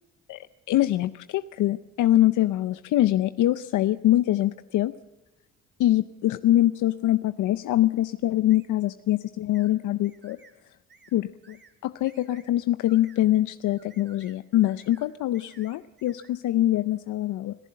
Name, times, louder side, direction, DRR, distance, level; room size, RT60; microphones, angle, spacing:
voice 1, 0.3-4.9 5.8-10.4 11.1-11.6 11.8-17.6, left 14 dB, 80° left, 13 dB, 0.6 m, -24 dB
sound 1, 8.5-8.7 9.5-9.7 10.0-10.5 10.9-11.1 11.4-11.7 12.0-12.5 12.9-13.2 13.8-14.4 14.6-15.1 15.3-16.3, right 4 dB, 35° right, 2.6 m, -55 dB
26.0 x 14.5 x 7.5 m, 0.97 s
cardioid pair, 90°, 30 cm